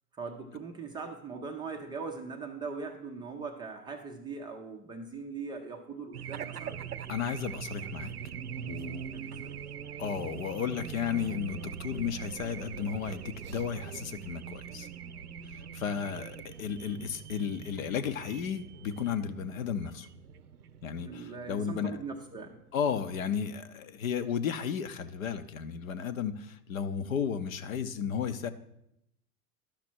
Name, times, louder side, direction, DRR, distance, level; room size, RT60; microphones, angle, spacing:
voice 1, 0.1-6.8 9.1-9.6 21.0-22.6, right 4 dB, 10° right, 2 dB, 0.4 m, -40 dB
Race car auto racing / Alarm, 6.1-23.1, right 8 dB, 85° right, 0.6 m, -42 dB
voice 2, 7.1-8.1 8.7-9.2 10.0-14.9 15.5-20.1 20.8-22.0 22.7-28.5, left 7 dB, 65° left, 11 dB, 0.8 m, -34 dB
11.5 x 6.0 x 4.4 m, 0.80 s
figure-of-eight pair, 95°, 44 cm